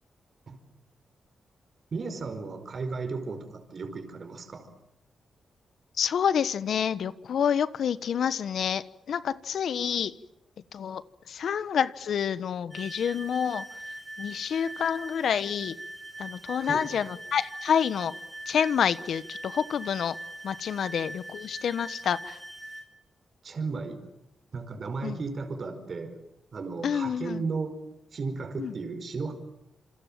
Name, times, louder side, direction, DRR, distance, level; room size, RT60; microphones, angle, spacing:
voice 1, 1.9-4.7 16.6-16.8 23.4-24.0 24.5-26.2 26.5-27.8 28.1-29.3, right 4 dB, 50° right, 7 dB, 5.0 m, -34 dB
voice 2, 6.0-10.1 10.7-13.6 14.2-15.8 16.2-18.1 18.5-20.1 20.4-22.4 25.0-25.2 26.8-27.4 28.6-28.7, left 8 dB, 75° left, 15 dB, 1.2 m, -28 dB
sound 1, 12.7-22.9, right 1 dB, 10° right, 6.9 m, -42 dB
28.0 x 27.0 x 7.6 m, 0.86 s
cardioid pair, 85°, 0 cm